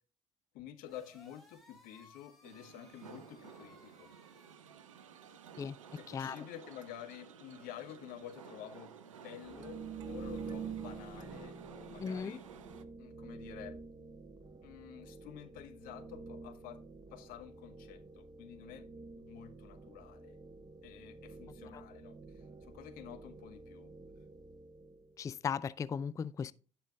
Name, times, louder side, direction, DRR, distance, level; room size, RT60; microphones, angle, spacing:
voice 1, 0.5-4.1 5.6-12.5 13.0-13.8 14.6-16.8 17.1-18.9 19.1-20.4 20.8-23.9, left 11 dB, 60° left, 1.1 m, -50 dB
sound 1, 0.8-4.5, left 2 dB, ahead, 3.8 m, -62 dB
sound 2, 2.4-12.8, right 7 dB, 80° right, 0.6 m, -54 dB
sound 3, 9.4-25.2, right 5 dB, 25° right, 0.9 m, -48 dB
voice 2, 12.0-12.4 21.7-21.8 25.2-26.5, left 6 dB, 20° left, 0.3 m, -37 dB
17.0 x 5.7 x 2.4 m
figure-of-eight pair, 50°, 16 cm